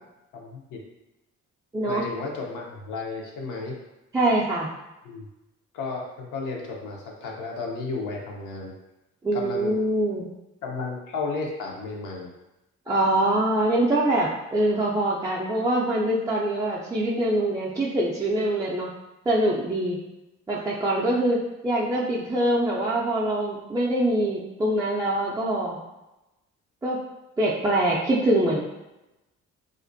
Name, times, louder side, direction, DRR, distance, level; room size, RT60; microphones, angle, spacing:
voice 1, 0.3-0.8 1.9-3.8 5.0-5.3 5.7-8.7 9.3-9.7 10.6-12.3, left 3 dB, 85° left, -1 dB, 0.6 m, -33 dB
voice 2, 4.1-4.7 9.2-10.3 12.9-18.9 19.3-20.0 20.5-21.4 21.6-25.8 26.8-27.0 27.4-28.6, right 1 dB, 10° right, -6 dB, 0.3 m, -24 dB
2.4 x 2.1 x 2.5 m, 0.98 s
cardioid pair, 90°, 30 cm